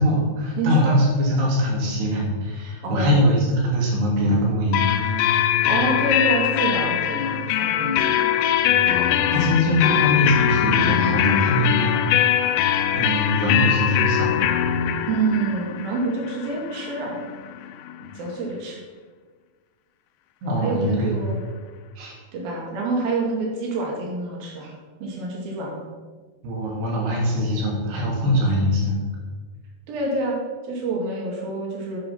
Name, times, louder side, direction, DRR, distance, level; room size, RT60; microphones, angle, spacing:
voice 1, 0.0-5.2 8.6-8.8 9.3-12.5 12.9-14.5 18.0-18.1 20.4-21.2 22.0-22.2 24.6-24.7 26.4-29.0, equal, 80° right, -2 dB, 4.8 m, -22 dB
voice 2, 0.6-1.0 2.8-3.3 5.7-8.2 8.9-9.6 15.1-17.2 18.2-18.8 20.6-21.4 22.3-24.7 25.0-25.9 29.9-30.4 30.6-32.0, right 2 dB, 65° right, -2 dB, 4.1 m, -27 dB
sound 1, 4.7-18.3, left 10 dB, 90° left, 1.9 m, -22 dB
10.5 x 8.8 x 5.8 m, 1.4 s
omnidirectional pair, 4.7 m